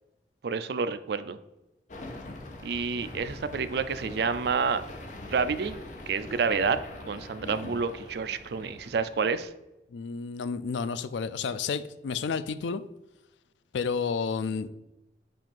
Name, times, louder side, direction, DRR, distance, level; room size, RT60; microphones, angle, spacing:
voice 1, 0.4-1.4 2.6-4.8 5.3-5.8 6.1-6.8 7.1-9.5, right 5 dB, 65° right, 12 dB, 0.4 m, -29 dB
sound 1, 1.9-9.4, left 2 dB, 45° left, 0.7 m, -43 dB
voice 2, 7.4-7.8 9.9-12.8 13.7-14.7, left 5 dB, 85° left, 14 dB, 0.4 m, -31 dB
7.6 x 2.5 x 5.4 m, 0.94 s
head